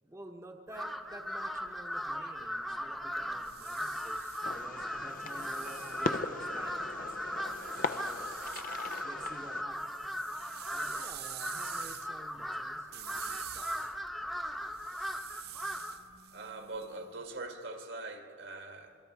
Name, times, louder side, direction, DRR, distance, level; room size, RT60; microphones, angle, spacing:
voice 1, 0.0-8.3 9.0-10.0 10.7-13.9, right 1 dB, 15° right, 2 dB, 0.9 m, -51 dB
Crow, 0.7-16.1, equal, ahead, 0.6 m, -38 dB
sound 1, 3.2-6.8 7.4-9.1 9.4-17.3, right 12 dB, 55° right, 0.7 m, -48 dB
Fireworks, 4.4-9.6, left 4 dB, 45° left, 0.5 m, -39 dB
voice 2, 16.3-19.0, right 2 dB, 75° right, 4 dB, 1.8 m, -42 dB
26.5 x 23.0 x 4.7 m, 2.8 s
head